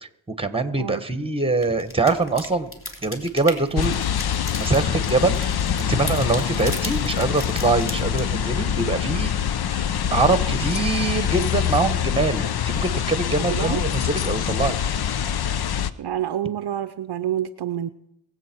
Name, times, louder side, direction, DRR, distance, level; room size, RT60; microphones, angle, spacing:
voice 1, 0.0-2.7 3.0-4.0 4.5-9.3 9.7-14.8, right 3 dB, 10° right, 11 dB, 1.4 m, -24 dB
sound 1, 1.6-8.6, left 1 dB, 25° left, 3.4 m, -38 dB
sound 2, 3.8-15.9, left 9 dB, 50° left, 0.8 m, -25 dB
voice 2, 13.4-13.8 16.0-17.9, right 11 dB, 50° right, 10 dB, 0.7 m, -28 dB
23.5 x 7.9 x 4.5 m, 0.77 s
supercardioid pair, 55°, 50 cm